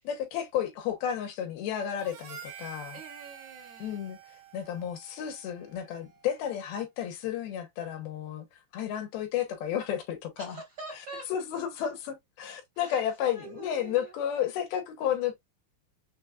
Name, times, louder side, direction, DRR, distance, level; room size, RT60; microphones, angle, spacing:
voice 1, 0.0-3.0 3.8-4.2 4.5-8.5 8.7-10.6 11.3-15.4, left 9 dB, 80° left, 2.8 m, -32 dB
Harmonica, 2.0-6.5, right 8 dB, 70° right, 1.5 m, -48 dB
voice 2, 2.9-4.0 10.4-11.3 12.7-14.1, right 3 dB, 50° right, 1.3 m, -45 dB
6.2 x 2.3 x 2.4 m
omnidirectional pair, 4.4 m